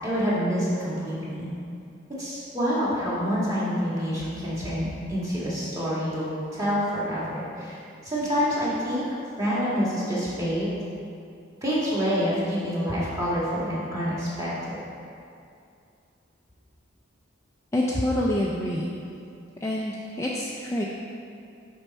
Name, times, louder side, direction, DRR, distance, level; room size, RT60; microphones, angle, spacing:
voice 1, 0.0-1.5 2.2-9.1 9.4-10.7 11.6-14.8, equal, 15° right, -9 dB, 1.7 m, -27 dB
voice 2, 17.7-18.9 19.6-20.8, left 1 dB, 15° left, -4 dB, 0.4 m, -26 dB
6.9 x 5.5 x 4.1 m, 2.5 s
head